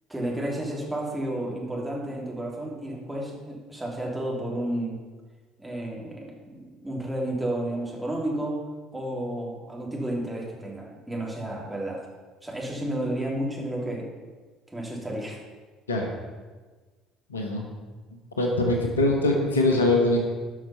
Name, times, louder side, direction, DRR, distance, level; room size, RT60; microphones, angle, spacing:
voice 1, 0.1-5.0 5.6-8.7 8.9-12.0 12.4-14.0 14.7-15.4, right 1 dB, 10° right, -3 dB, 3.0 m, -31 dB
voice 2, 17.3-17.6 18.4-20.2, left 2 dB, 80° left, 1 dB, 1.3 m, -22 dB
12.5 x 6.0 x 5.6 m, 1.4 s
figure-of-eight pair, 55°, 0 cm